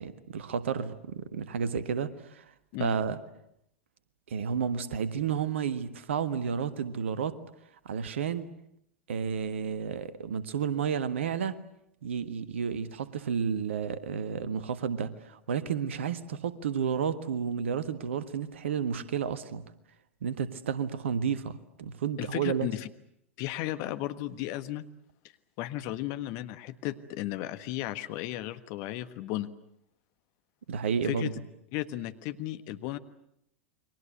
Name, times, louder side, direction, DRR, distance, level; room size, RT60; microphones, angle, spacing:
voice 1, 0.0-2.4 2.8-3.2 4.3-7.4 7.8-8.5 9.1-11.6 12.0-19.6 20.2-22.7 30.7-31.4, right 7 dB, 65° right, 14 dB, 1.5 m, -31 dB
voice 2, 22.2-22.9 23.4-24.8 25.6-29.5 31.0-31.3 31.7-33.0, left 15 dB, 45° left, 11 dB, 1.5 m, -34 dB
29.5 x 22.5 x 8.0 m, 0.76 s
figure-of-eight pair, 90°, 7 cm